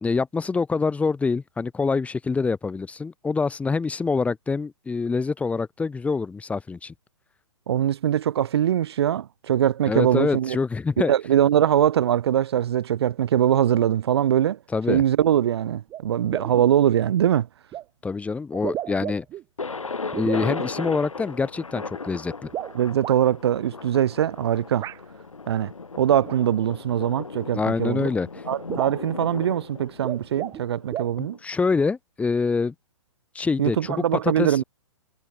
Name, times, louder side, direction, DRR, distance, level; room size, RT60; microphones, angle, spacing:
voice 1, 0.0-6.9 9.9-11.1 14.7-15.0 18.0-19.2 20.2-22.5 27.5-28.3 31.2-32.7 33.3-34.0 34.4-34.6, left 4 dB, 10° left, 2.9 m, -25 dB
voice 2, 7.7-10.6 11.0-14.6 14.9-17.5 22.7-24.9 25.5-25.7 26.0-28.1 28.5-31.4 33.6-34.6, right 10 dB, 50° right, 0.9 m, -22 dB
sound 1, 15.9-16.0 16.3-16.7 17.7-17.8 18.5-19.4 20.1-20.5 22.4-23.2 24.8-25.0 26.2-26.4 27.6-27.7 28.0-28.1 28.4-28.5 28.7-29.1 29.9-30.6 30.9-31.2, right 12 dB, 20° right, 3.4 m, -33 dB
Thunder, 19.6-31.4, left 4 dB, 75° left, 4.9 m, -36 dB
figure-of-eight pair, 120°, 17 cm